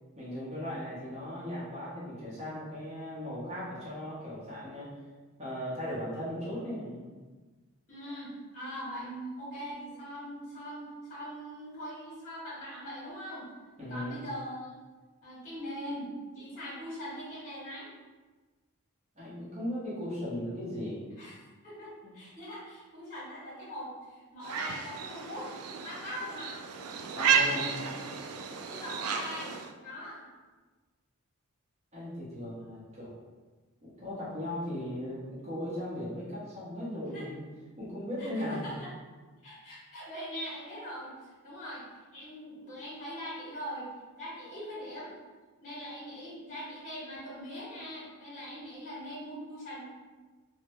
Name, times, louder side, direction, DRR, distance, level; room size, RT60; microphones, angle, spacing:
voice 1, 0.2-4.9 5.4-7.1 13.8-14.1 19.2-21.0 22.0-22.1 27.2-27.7 31.9-33.1 33.8-37.4 37.8-38.8, left 1 dB, 30° right, -7 dB, 0.9 m, -37 dB
voice 2, 7.9-13.5 13.9-14.7 15.2-17.9 21.2-26.5 27.2-28.0 28.5-30.2 37.1-37.3 38.2-38.9 39.4-41.9 42.1-43.9 44.1-45.1 45.6-49.8, equal, 35° left, -8 dB, 1.2 m, -42 dB
sound 1, 24.4-29.7, right 6 dB, 85° right, 0.3 m, -32 dB
3.2 x 2.1 x 3.0 m, 1.3 s
head